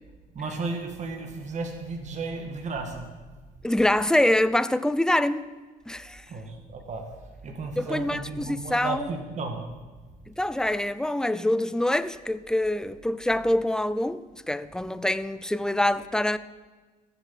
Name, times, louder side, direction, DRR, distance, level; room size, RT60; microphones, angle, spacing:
voice 1, 0.3-3.0 6.3-7.0 7.4-9.6, right 3 dB, 45° right, 1.8 m, -34 dB
voice 2, 3.6-5.5 5.9-6.2 7.8-9.1 10.3-14.2 14.5-16.4, left 1 dB, 5° left, 0.4 m, -25 dB
14.0 x 7.4 x 7.4 m
cardioid pair, 110°, 17 cm